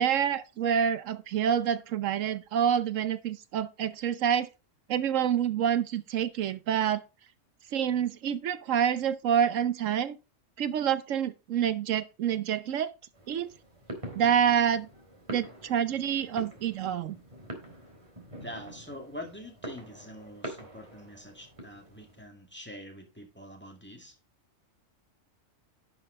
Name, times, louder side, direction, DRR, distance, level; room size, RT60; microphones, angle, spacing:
voice 1, 0.0-4.5 4.9-7.0 7.7-10.2 10.6-12.9 13.3-13.5 14.1-14.9 15.3-17.2, right 8 dB, 80° right, 1.1 m, -27 dB
sound 1, 13.1-22.2, right 1 dB, 25° right, 3.0 m, -45 dB
voice 2, 18.4-24.2, left 1 dB, 10° left, 2.2 m, -45 dB
11.0 x 6.1 x 4.1 m
omnidirectional pair, 1.3 m